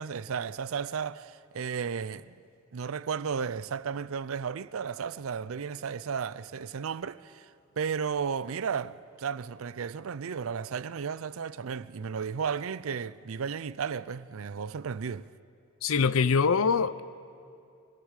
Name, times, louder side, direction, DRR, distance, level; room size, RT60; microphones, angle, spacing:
voice 1, 0.0-2.3 2.7-7.5 7.8-15.3, right 6 dB, 75° right, 0.5 m, -34 dB
voice 2, 15.8-17.0, left 5 dB, 80° left, 0.5 m, -24 dB
25.0 x 17.0 x 6.6 m
head